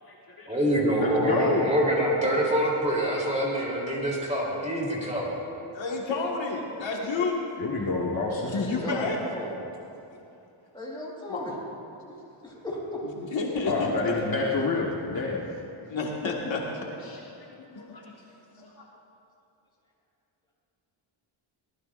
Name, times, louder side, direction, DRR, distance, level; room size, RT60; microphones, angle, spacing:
voice 1, 0.5-5.4, right 1 dB, 15° right, -4 dB, 3.4 m, -25 dB
voice 2, 1.0-1.7 7.6-8.5 13.7-15.4 17.0-17.5 17.8-18.0 18.6-18.8, left 3 dB, 45° left, -4 dB, 1.5 m, -28 dB
voice 3, 5.7-7.4 8.4-9.2 11.3-11.4 13.0-14.2 15.9-17.1 17.7-18.3 18.6-18.7, left 3 dB, 65° left, -2 dB, 1.9 m, -31 dB
voice 4, 8.5-9.6 10.7-11.5 12.0-12.1 12.4-12.8, left 1 dB, 10° left, -6 dB, 4.3 m, -36 dB
23.5 x 19.0 x 2.6 m, 2.8 s
wide cardioid pair, 165°, 50 cm